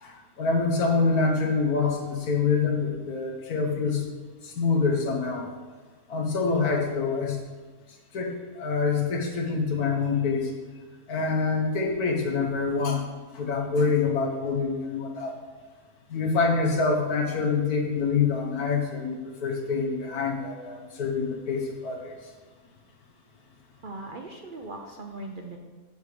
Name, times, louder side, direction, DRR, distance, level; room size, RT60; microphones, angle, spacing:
voice 1, 0.0-4.0 4.4-5.5 6.1-7.4 8.1-10.5 11.1-13.0 13.3-15.3 16.1-22.1, left 4 dB, 90° left, 1 dB, 1.7 m, -26 dB
voice 2, 23.8-25.6, right 2 dB, 55° right, 3 dB, 0.6 m, -39 dB
7.3 x 5.0 x 6.8 m, 1.4 s
omnidirectional pair, 1.5 m